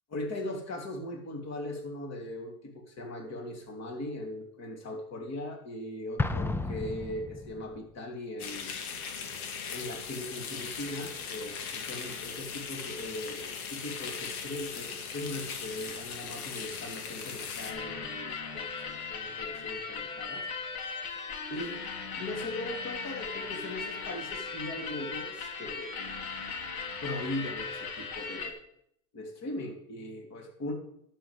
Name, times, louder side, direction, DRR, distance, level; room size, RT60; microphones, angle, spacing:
voice 1, 0.1-9.4 9.7-21.1 21.5-21.8 22.2-26.0 27.0-28.6 29.1-30.7, left 1 dB, 35° left, 2 dB, 3.3 m, -39 dB
Explosion, 6.2-7.8, left 3 dB, 5° left, 0.5 m, -32 dB
sound 1, 8.4-17.7, left 6 dB, 75° left, 2.4 m, -39 dB
sound 2, 17.7-28.5, left 5 dB, 50° left, 2.5 m, -38 dB
11.5 x 5.6 x 8.2 m, 0.71 s
hypercardioid pair, 110°, 44 cm